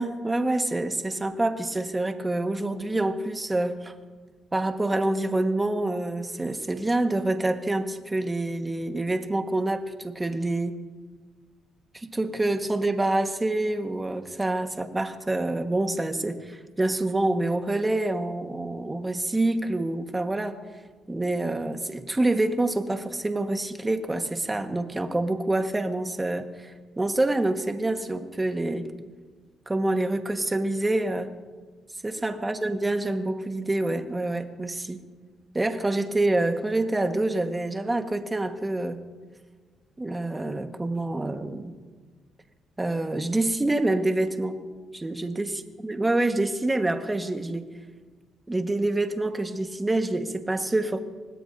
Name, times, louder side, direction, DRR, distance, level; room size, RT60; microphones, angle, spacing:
voice 1, 0.0-3.9 4.5-10.8 11.9-20.6 21.1-28.9 29.7-31.3 32.0-35.0 35.5-39.0 40.0-41.7 42.8-44.6 44.9-45.5 45.8-47.7 48.5-51.0, right 2 dB, 15° right, 6 dB, 1.5 m, -27 dB
25.5 x 19.0 x 2.7 m, 1.5 s
cardioid pair, 90°, 0 cm